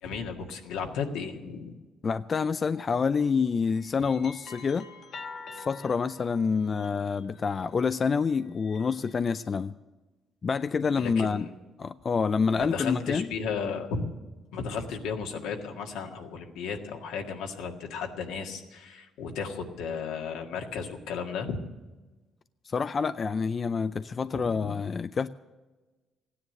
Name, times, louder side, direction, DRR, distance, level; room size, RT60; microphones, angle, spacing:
voice 1, 0.0-1.7 10.9-11.5 12.6-14.2 14.5-21.6 24.3-24.7, left 5 dB, 85° left, 2 dB, 1.8 m, -34 dB
voice 2, 2.0-4.9 5.5-9.7 10.4-11.5 11.8-13.3 22.7-25.3, left 5 dB, 40° left, 12 dB, 0.4 m, -27 dB
sound 1, 2.7-3.0 3.7-7.9 8.4-9.5, left 4 dB, 55° left, 1.2 m, -47 dB
15.5 x 9.9 x 8.0 m, 1.2 s
cardioid pair, 95°, 0 cm